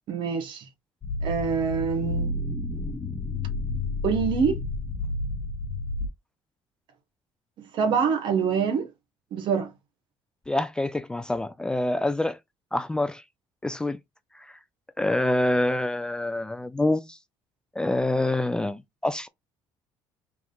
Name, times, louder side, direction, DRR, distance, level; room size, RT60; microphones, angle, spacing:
voice 1, 0.1-0.6 1.2-2.3 4.0-4.6 7.7-8.9 9.3-9.7, right 6 dB, 60° right, 1.3 m, -25 dB
sound 1, 1.0-6.1, left 2 dB, 25° left, 1.3 m, -30 dB
voice 2, 10.5-12.4 12.7-13.2 13.6-14.0 14.3-14.5 15.0-17.2 17.8-19.3, left 1 dB, 10° left, 0.3 m, -26 dB
3.6 x 2.9 x 3.9 m
cardioid pair, 120°, 9 cm